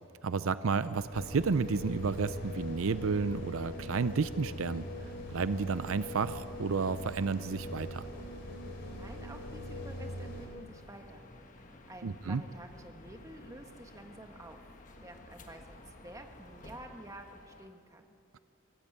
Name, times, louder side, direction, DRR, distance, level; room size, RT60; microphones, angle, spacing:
voice 1, 0.2-4.9 5.3-8.1 12.0-12.4, right 4 dB, 75° right, 14 dB, 0.5 m, -31 dB
sound 1, 0.6-17.7, left 1 dB, 35° left, 1.4 m, -53 dB
sound 2, 1.1-10.5, left 1 dB, 55° left, 4.3 m, -42 dB
voice 2, 8.9-14.7 15.0-18.1, right 1 dB, 15° right, 4 dB, 1.4 m, -50 dB
24.5 x 14.0 x 9.2 m, 2.5 s
head